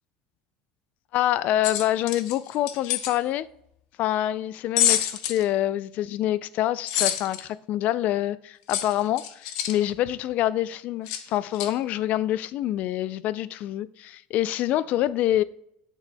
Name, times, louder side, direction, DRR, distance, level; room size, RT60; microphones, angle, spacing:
voice 1, 1.1-3.5 4.0-15.4, left 13 dB, 55° left, 0.3 m, -26 dB
sound 1, 1.6-3.1 4.8-5.4 6.9-7.4 8.7-9.8 11.1-11.2 11.5-11.7, left 11 dB, 80° left, 0.7 m, -26 dB
7.5 x 6.2 x 2.2 m
supercardioid pair, 110°, 3 cm